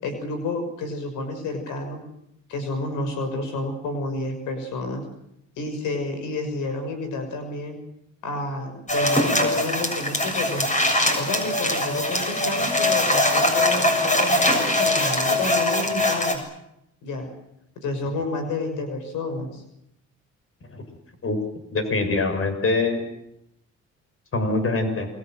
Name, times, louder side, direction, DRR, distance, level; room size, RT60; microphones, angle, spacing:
voice 1, 0.0-2.0 2.5-5.0 5.6-7.8 8.2-10.7 11.2-16.4 17.0-17.3 17.8-19.6, left 2 dB, 90° left, 6 dB, 6.2 m, -30 dB
sound 1, 8.9-16.3, left 1 dB, 25° left, 7.2 m, -22 dB
voice 2, 21.7-23.0 24.3-25.1, left 3 dB, 45° left, 7 dB, 6.7 m, -24 dB
28.5 x 23.5 x 7.8 m, 0.81 s
cardioid pair, 90°, 30 cm